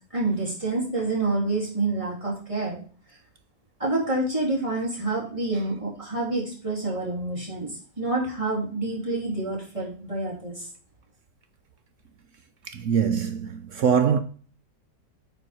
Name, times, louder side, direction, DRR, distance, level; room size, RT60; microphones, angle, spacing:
voice 1, 0.1-2.8 3.8-7.7 8.0-10.7, right 2 dB, 20° right, 3.4 m, -27 dB
voice 2, 12.7-14.2, right 7 dB, 60° right, 0.8 m, -23 dB
8.9 x 4.7 x 5.0 m
omnidirectional pair, 1.8 m